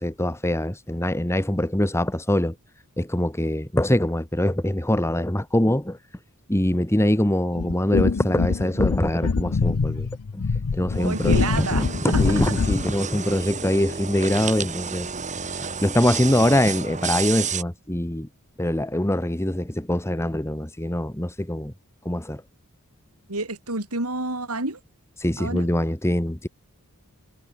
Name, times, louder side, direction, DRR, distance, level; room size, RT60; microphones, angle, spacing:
voice 1, 0.0-2.5 3.0-6.0 6.5-10.1 10.3-10.4 10.7-15.1 15.4-18.3 18.6-21.7 22.0-22.4 25.2-26.5, left 1 dB, 10° left, 1.7 m, -23 dB
sound 1, 7.6-12.9, left 4 dB, 75° left, 0.6 m, -24 dB
sound 2, 10.9-17.6, right 6 dB, 35° right, 7.5 m, -31 dB
voice 2, 11.0-12.6 23.3-24.8 25.4-25.7, right 2 dB, 75° right, 5.3 m, -29 dB
head